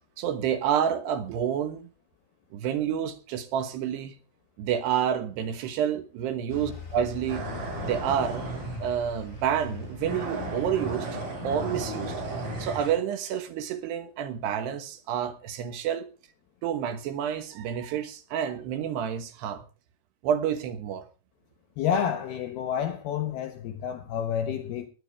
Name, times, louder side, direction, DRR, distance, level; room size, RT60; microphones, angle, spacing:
voice 1, 0.2-1.9 2.5-4.1 4.6-7.4 7.8-8.5 8.8-12.2 12.6-16.1 16.6-19.6 20.2-21.1, right 9 dB, 70° right, 2.9 m, -29 dB
Bus, 6.5-12.4, left 5 dB, 20° left, 2.3 m, -43 dB
sound 1, 7.3-8.9 9.4-9.7 10.0-13.0, right 1 dB, 40° right, 8.5 m, -34 dB
voice 2, 21.8-24.9, left 8 dB, 80° left, 2.3 m, -29 dB
19.0 x 11.5 x 3.5 m
omnidirectional pair, 6.0 m